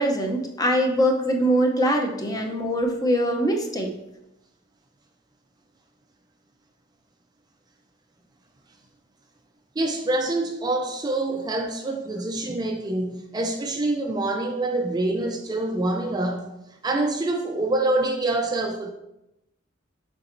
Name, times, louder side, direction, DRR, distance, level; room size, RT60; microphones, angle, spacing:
voice 1, 0.0-3.9, equal, 20° left, 2 dB, 0.7 m, -23 dB
voice 2, 9.8-16.5 16.8-18.9, right 2 dB, 20° right, 3 dB, 0.4 m, -26 dB
7.0 x 5.1 x 2.6 m, 0.88 s
head